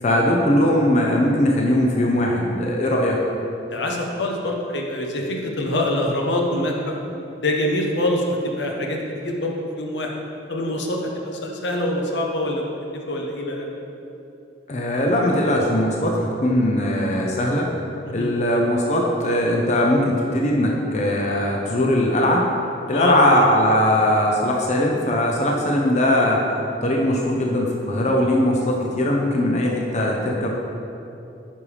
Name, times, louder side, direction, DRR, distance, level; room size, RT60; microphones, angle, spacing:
voice 1, 0.0-3.2 14.7-17.7 18.1-22.5 22.9-26.4 26.8-30.5, left 1 dB, 40° left, -1 dB, 0.7 m, -20 dB
voice 2, 3.7-6.9 7.4-10.1 10.5-13.7 18.0-18.3 22.9-23.2, left 1 dB, 80° left, 0 dB, 1.0 m, -25 dB
9.6 x 5.5 x 3.4 m, 2.8 s
head